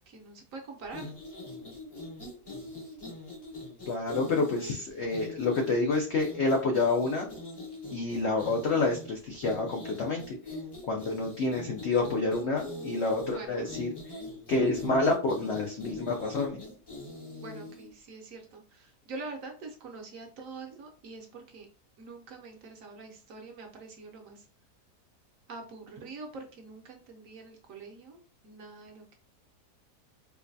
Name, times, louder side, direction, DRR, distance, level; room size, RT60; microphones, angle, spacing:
voice 1, 0.1-1.1 13.3-13.7 17.4-21.7 22.0-24.5 25.5-29.2, right 3 dB, 65° right, 2 dB, 0.9 m, -45 dB
sound 1, 0.8-17.9, left 2 dB, 30° left, 0.4 m, -42 dB
voice 2, 3.9-7.3 7.9-10.4 10.9-13.9 14.5-16.6, left 3 dB, 80° left, 2 dB, 0.6 m, -28 dB
4.6 x 2.2 x 2.6 m, 0.39 s
omnidirectional pair, 1.8 m